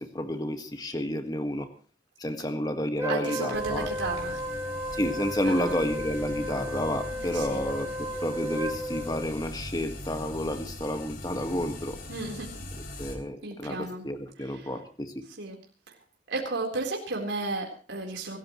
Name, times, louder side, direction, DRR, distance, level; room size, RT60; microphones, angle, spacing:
voice 1, 0.0-1.7 2.2-3.9 4.9-12.0 13.0-15.2, left 1 dB, 20° left, 7 dB, 1.7 m, -31 dB
Wind instrument woodwind instrument, 3.0-9.3, equal, 15° right, 2.5 m, -34 dB
voice 2, 3.1-4.4 5.4-5.7 7.2-7.6 12.1-12.5 13.4-14.0 15.4-15.6 16.3-18.4, right 2 dB, 80° right, 0 dB, 4.0 m, -33 dB
sound 1, 3.5-13.2, left 1 dB, 50° left, 3.5 m, -41 dB
26.5 x 14.5 x 3.1 m, 0.37 s
head